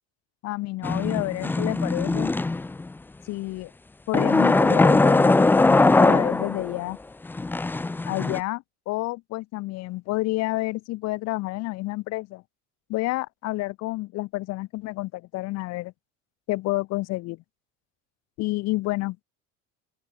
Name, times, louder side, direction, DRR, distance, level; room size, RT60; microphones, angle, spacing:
voice 1, 0.4-2.3 3.2-3.7 4.1-7.0 8.1-12.4 12.9-15.9 16.5-17.4 18.4-19.2, left 20 dB, 55° left, 2.6 m, -29 dB
sound 1, 0.8-2.9 4.1-6.8 7.3-8.4, left 3 dB, 5° left, 0.7 m, -20 dB
open air
cardioid pair, 175°, 32 cm